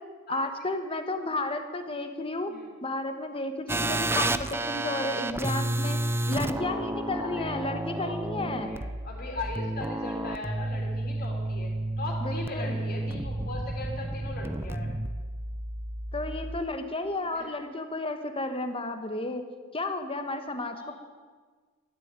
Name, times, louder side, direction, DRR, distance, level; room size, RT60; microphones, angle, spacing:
voice 1, 0.3-2.5 2.8-6.0 6.3-8.7 12.2-12.8 16.1-19.4 19.7-20.9, left 2 dB, 25° left, 7 dB, 1.3 m, -32 dB
sound 1, 3.7-16.6, right 1 dB, 10° right, 0.5 m, -31 dB
voice 2, 7.2-11.7 12.0-15.0 17.3-17.5 20.7-20.9, left 2 dB, 45° left, -2 dB, 3.4 m, -39 dB
13.0 x 10.5 x 9.1 m, 1.5 s
head